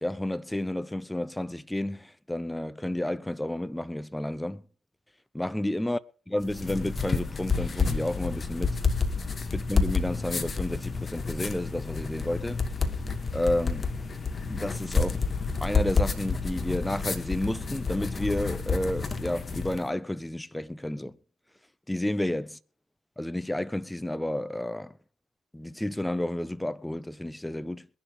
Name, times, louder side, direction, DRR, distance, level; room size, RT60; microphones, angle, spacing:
voice 1, 0.0-4.6 5.3-6.0 6.3-8.8 9.5-12.7 13.3-13.9 14.5-15.2 15.6-21.2 21.9-22.5 23.2-25.0 25.5-27.9, left 1 dB, 10° left, 0.8 m, -31 dB
sound 1, 6.4-19.9, left 4 dB, 35° left, 1.9 m, -29 dB
22.5 x 11.0 x 3.3 m
hypercardioid pair, 50°, 0 cm